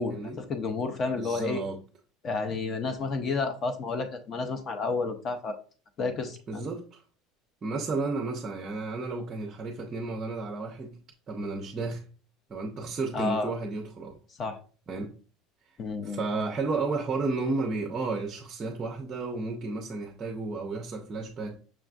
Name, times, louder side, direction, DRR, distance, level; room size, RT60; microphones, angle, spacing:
voice 1, 0.0-1.6 2.2-5.6 6.0-6.7 13.1-13.5 14.4-14.6 15.8-16.2, left 4 dB, 30° left, 0.5 m, -31 dB
voice 2, 1.2-1.8 6.5-7.0 7.6-11.0 11.3-12.0 12.5-14.2 14.9-15.1 16.0-21.6, right 3 dB, 25° right, 0.5 m, -32 dB
5.9 x 2.4 x 2.4 m
cardioid pair, 145°, 0 cm